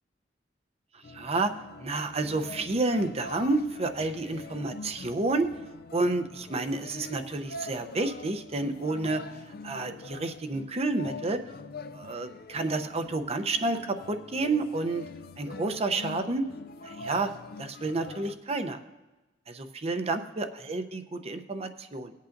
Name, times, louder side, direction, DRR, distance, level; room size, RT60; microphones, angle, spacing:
sound 1, 1.0-18.3, left 3 dB, 55° left, 0.4 m, -44 dB
voice 1, 1.1-1.5 1.8-5.5 5.9-9.2 9.6-11.4 11.9-15.1 15.4-16.4 16.8-17.3 17.6-18.8 19.5-22.1, right 2 dB, 35° right, 7 dB, 0.7 m, -30 dB
19.0 x 8.3 x 2.6 m, 1.1 s
head